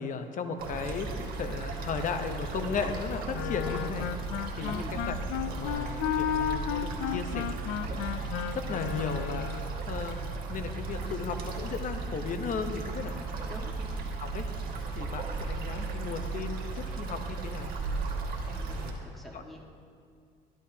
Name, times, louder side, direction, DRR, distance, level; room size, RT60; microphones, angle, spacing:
voice 1, 0.0-8.2 8.5-10.2 10.5-13.1 14.2-14.4 14.9-17.7 18.8-18.9 19.3-19.4, left 5 dB, 50° left, 7 dB, 0.9 m, -36 dB
sound 1, 0.6-18.9, right 3 dB, 60° right, 1.8 m, -36 dB
sound 2, 1.8-3.5 4.0-4.1 4.4-10.6, right 2 dB, 45° right, 1.9 m, -55 dB
Wind instrument woodwind instrument, 3.3-9.7, left 10 dB, 90° left, 0.5 m, -33 dB
voice 2, 13.2-13.7 18.5-19.6, left 1 dB, ahead, -2 dB, 1.7 m, -47 dB
13.0 x 11.5 x 2.8 m, 2.3 s
cardioid pair, 110°, 17 cm